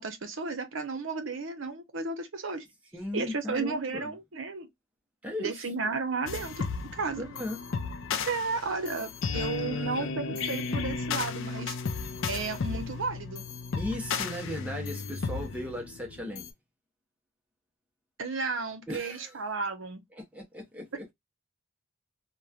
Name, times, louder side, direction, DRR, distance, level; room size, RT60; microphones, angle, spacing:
voice 1, 0.0-2.7 3.1-4.7 5.4-6.7 6.9-7.3 8.3-11.8 12.3-13.4 18.2-20.0, right 4 dB, 60° right, 0.7 m, -33 dB
voice 2, 2.9-4.1 5.2-5.7 7.2-7.6 9.3-10.4 13.8-16.5 18.9-19.3 20.1-21.1, left 1 dB, 5° right, 0.6 m, -37 dB
sound 1, 6.3-16.5, left 5 dB, 60° left, 0.4 m, -34 dB
2.9 x 2.2 x 2.3 m
head